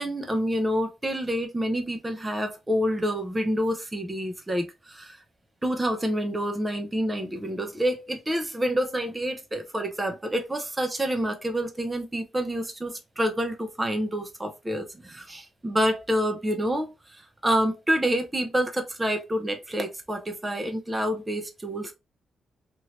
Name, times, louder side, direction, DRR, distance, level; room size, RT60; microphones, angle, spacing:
voice 1, 0.0-5.2 5.6-21.9, equal, 15° right, 0.6 m, -28 dB
2.9 x 2.6 x 3.1 m
cardioid pair, 115°, 0 cm